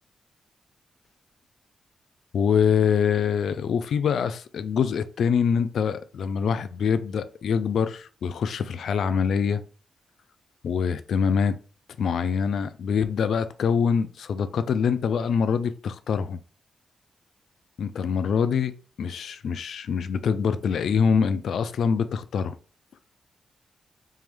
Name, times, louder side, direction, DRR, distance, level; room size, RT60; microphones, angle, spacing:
voice 1, 2.3-9.6 10.6-11.6 12.0-16.4 17.8-18.7 19.0-22.6, left 6 dB, 80° left, 0.3 m, -24 dB
3.7 x 3.0 x 3.2 m
cardioid pair, 80°, 0 cm